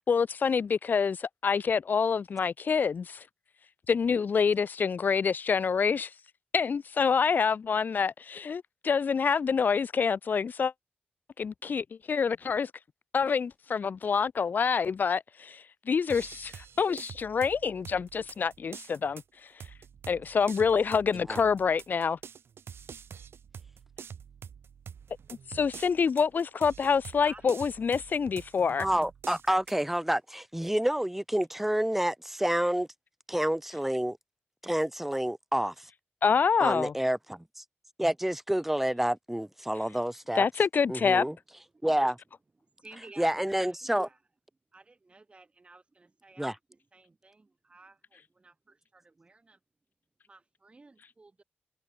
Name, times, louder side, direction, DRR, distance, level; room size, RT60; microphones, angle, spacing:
voice 1, 0.0-3.2 3.9-6.1 6.5-10.7 11.4-12.7 13.1-19.2 20.1-22.2 25.5-28.9 36.2-36.9 40.4-41.3, left 6 dB, 50° left, 0.4 m, -27 dB
sound 1, 16.1-29.8, right 7 dB, 80° right, 3.0 m, -47 dB
voice 2, 27.2-27.6 41.5-41.9 42.8-44.2 44.7-49.6 50.3-51.4, right 3 dB, 30° right, 7.2 m, -55 dB
voice 3, 28.8-32.9 33.3-34.2 34.6-35.9 36.6-37.6 38.0-40.5 40.9-41.4 41.8-42.2 43.2-44.1 46.4-46.5, right 1 dB, 5° right, 2.5 m, -28 dB
wide cardioid pair, 115°, 4 cm